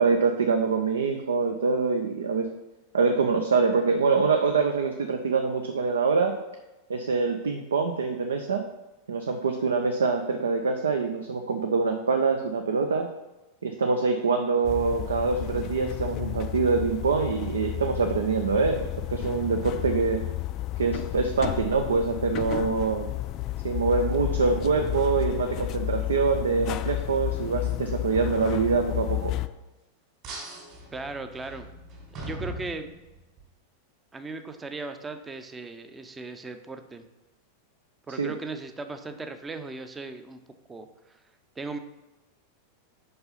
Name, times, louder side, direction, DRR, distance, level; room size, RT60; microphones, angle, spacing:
voice 1, 0.0-2.5 2.9-6.3 6.9-8.6 9.1-13.1 13.6-20.2 20.8-23.1 23.6-29.3 38.2-38.3, right 4 dB, 70° right, 5 dB, 0.5 m, -25 dB
sound 1, 14.6-29.5, left 16 dB, 40° left, 0.3 m, -32 dB
sound 2, 30.2-33.4, right 1 dB, 40° right, 2.5 m, -40 dB
voice 2, 30.9-31.7 32.1-32.9 34.1-37.1 38.1-40.4 40.7-40.9 41.6-41.8, right 3 dB, 15° right, 8 dB, 0.6 m, -37 dB
5.5 x 5.4 x 5.7 m, 1.1 s
figure-of-eight pair, 90°, 0 cm